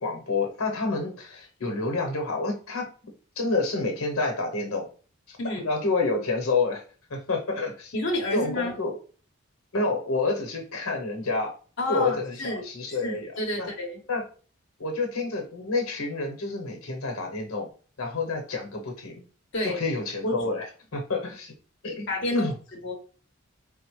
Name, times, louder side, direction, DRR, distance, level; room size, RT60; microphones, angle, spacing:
voice 1, 0.0-2.9 3.4-4.9 5.3-6.8 7.1-7.9 8.3-8.9 9.7-11.5 11.9-13.3 13.6-13.7 14.1-14.2 14.8-17.7 18.0-19.2 19.6-20.6 20.9-21.5 21.8-22.5, left 3 dB, 85° left, 3 dB, 0.8 m, -28 dB
voice 2, 5.4-5.7 7.9-8.7 11.8-12.6 13.0-14.0 19.5-19.8 20.2-20.4 22.1-22.5 22.8-22.9, left 1 dB, 55° left, 0 dB, 0.8 m, -29 dB
3.6 x 2.1 x 3.0 m, 0.39 s
head